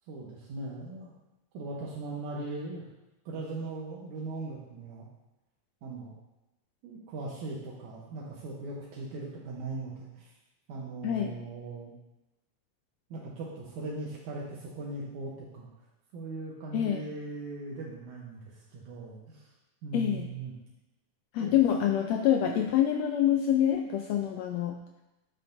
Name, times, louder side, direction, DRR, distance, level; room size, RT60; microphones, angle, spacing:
voice 1, 0.1-1.1 1.5-2.9 3.3-5.1 5.8-6.2 6.8-10.4 10.7-11.9 13.1-15.7 16.1-19.5 19.8-20.5 21.4-21.5, right 2 dB, 80° right, -4 dB, 2.4 m, -39 dB
voice 2, 11.0-11.4 16.7-17.0 19.9-20.3 21.3-24.8, left 10 dB, 80° left, 4 dB, 1.6 m, -26 dB
10.5 x 7.8 x 2.6 m, 0.98 s
omnidirectional pair, 3.4 m